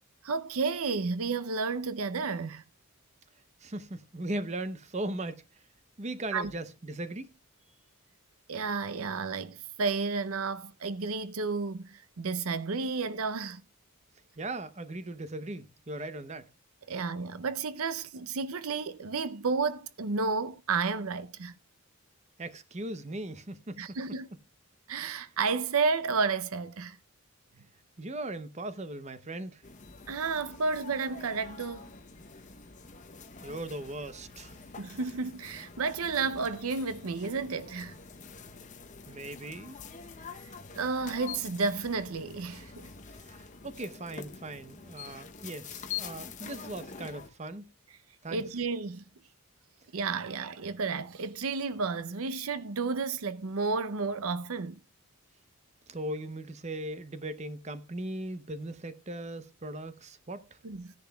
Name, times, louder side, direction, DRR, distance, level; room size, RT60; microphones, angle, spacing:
voice 1, 0.2-2.6 6.3-6.5 8.5-13.6 16.9-21.6 23.8-24.3 24.9-27.0 30.1-31.9 34.8-38.0 40.7-42.9 48.3-49.0 49.9-54.8 60.6-60.9, right 4 dB, 75° right, 0.6 m, -32 dB
voice 2, 3.6-5.5 6.0-7.3 14.4-16.5 22.4-24.0 28.0-29.6 33.4-34.6 39.1-39.8 43.1-47.7 48.2-48.4 55.9-60.6, right 1 dB, 30° right, 0.7 m, -38 dB
sound 1, 29.6-47.3, left 6 dB, 35° left, 0.8 m, -46 dB
17.0 x 10.5 x 2.3 m
head